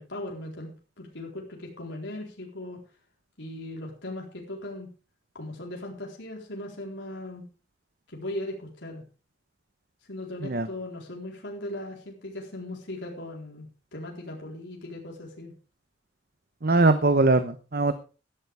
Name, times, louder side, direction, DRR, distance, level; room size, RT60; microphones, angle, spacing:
voice 1, 0.0-2.8 3.4-4.9 5.3-7.4 8.1-9.0 10.1-13.7 13.9-15.5, left 1 dB, 75° left, -1 dB, 4.1 m, -38 dB
voice 2, 16.6-18.0, right 2 dB, 55° right, 10 dB, 0.9 m, -21 dB
16.5 x 12.5 x 3.5 m, 0.34 s
head